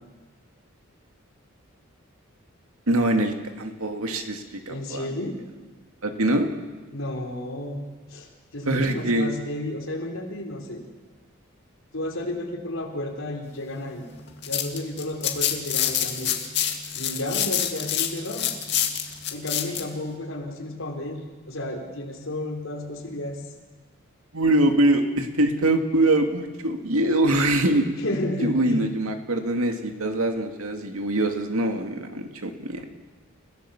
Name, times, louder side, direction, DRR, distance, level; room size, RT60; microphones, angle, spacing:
voice 1, 2.9-5.1 6.0-6.5 8.7-9.3 24.3-27.9 28.4-32.9, right 1 dB, 90° right, 5 dB, 2.4 m, -23 dB
voice 2, 4.7-5.4 6.9-7.8 8.1-10.8 11.9-14.1 14.5-16.3 16.9-18.5 19.3-21.2 21.5-23.4 28.0-28.8, left 1 dB, 70° left, 0 dB, 4.3 m, -32 dB
sound 1, 14.2-19.8, left 10 dB, 55° left, 2.2 m, -27 dB
30.0 x 16.5 x 7.2 m, 1.3 s
head